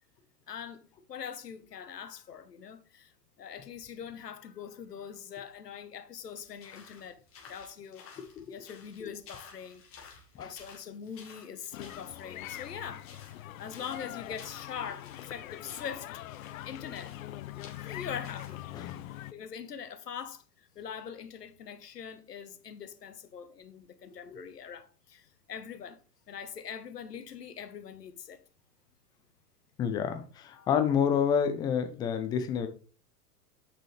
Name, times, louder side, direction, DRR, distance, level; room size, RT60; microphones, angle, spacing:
voice 1, 0.5-7.2 7.5-8.0 8.5-10.1 10.4-16.1 16.6-17.1 17.8-18.7 19.3-26.0 26.3-28.4 30.5-30.7, left 7 dB, 75° left, 1.1 m, -43 dB
sound 1, 6.3-19.1, left 6 dB, 25° left, 2.7 m, -54 dB
sound 2, 11.7-19.3, left 14 dB, 55° left, 0.6 m, -43 dB
voice 2, 18.7-19.1 24.2-24.4 29.8-32.7, left 7 dB, 10° left, 0.4 m, -29 dB
8.3 x 6.1 x 3.2 m
figure-of-eight pair, 95°, 48 cm